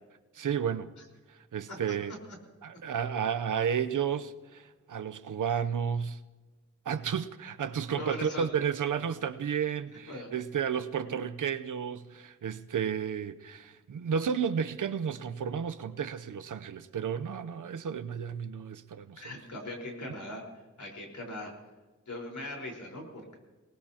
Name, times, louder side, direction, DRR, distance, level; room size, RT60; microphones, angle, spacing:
voice 1, 0.3-0.9 1.3-2.1 2.6-6.2 6.9-19.2, right 7 dB, 90° right, 0.8 m, -32 dB
voice 2, 8.0-8.5 10.1-10.3 19.2-20.4 20.8-21.5 22.1-23.4, left 1 dB, 70° left, 4.6 m, -39 dB
26.0 x 19.0 x 2.9 m
wide cardioid pair, 90°, 30 cm